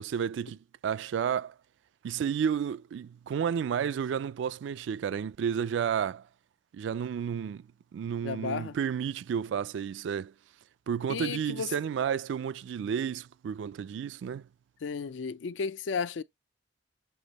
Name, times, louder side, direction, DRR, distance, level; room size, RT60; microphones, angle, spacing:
voice 1, 0.0-1.5 2.0-6.2 6.7-7.7 7.9-10.3 10.9-14.4, right 7 dB, 75° right, 0.3 m, -31 dB
voice 2, 8.2-8.8 11.1-11.7 14.8-16.2, left 5 dB, 80° left, 0.4 m, -33 dB
7.0 x 3.5 x 3.9 m
head